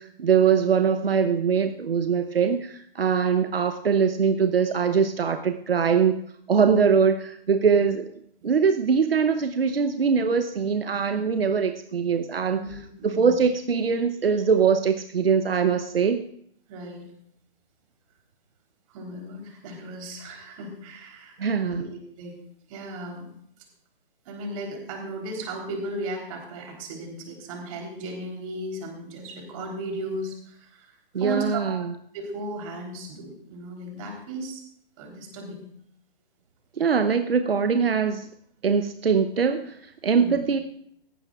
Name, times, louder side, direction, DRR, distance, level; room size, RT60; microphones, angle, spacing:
voice 1, 0.0-6.2 6.5-8.1 8.4-16.2 21.4-21.8 31.1-31.9 36.8-38.3 38.6-40.6, right 6 dB, 80° right, 8 dB, 0.9 m, -22 dB
voice 2, 12.6-13.4 16.7-17.1 18.9-22.4 22.7-23.2 24.3-31.9 32.1-34.6 35.0-35.6 40.1-40.4, right 1 dB, 35° right, 1 dB, 3.6 m, -36 dB
17.0 x 14.0 x 2.4 m, 0.67 s
figure-of-eight pair, 140°, 29 cm